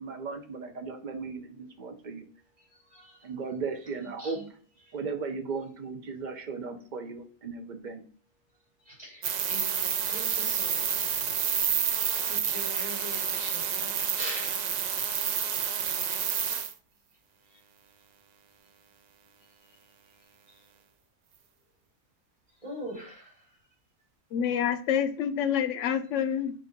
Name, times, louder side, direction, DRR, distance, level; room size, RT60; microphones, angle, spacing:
voice 1, 0.0-2.3 3.2-4.4 4.9-8.0, right 4 dB, 45° right, 6 dB, 0.8 m, -36 dB
voice 2, 8.9-11.1 12.2-14.6 22.6-23.4, equal, 25° right, -4 dB, 2.7 m, -42 dB
sound 1, 9.2-16.7, right 7 dB, 70° right, 0.4 m, -29 dB
voice 3, 24.3-26.5, left 8 dB, 75° left, 10 dB, 1.0 m, -27 dB
7.6 x 2.6 x 5.2 m, 0.43 s
omnidirectional pair, 1.3 m